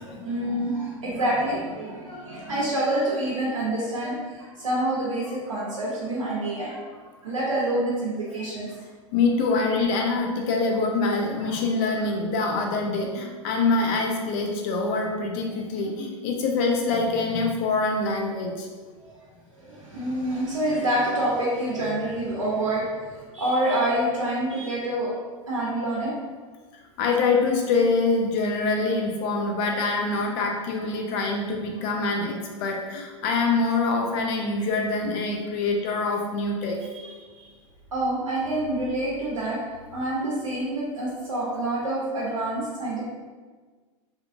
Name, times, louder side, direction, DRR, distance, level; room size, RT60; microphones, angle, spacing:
voice 1, 0.0-8.8 11.4-11.5 12.0-12.1 19.1-19.2 19.5-25.1 25.5-26.1 36.9-37.1 37.9-39.6 39.9-43.0, right 1 dB, 90° right, -6 dB, 0.6 m, -27 dB
voice 2, 9.1-18.7 27.0-36.8, left 3 dB, 50° left, 1 dB, 0.5 m, -25 dB
2.8 x 2.3 x 2.4 m, 1.4 s
hypercardioid pair, 95°, 16 cm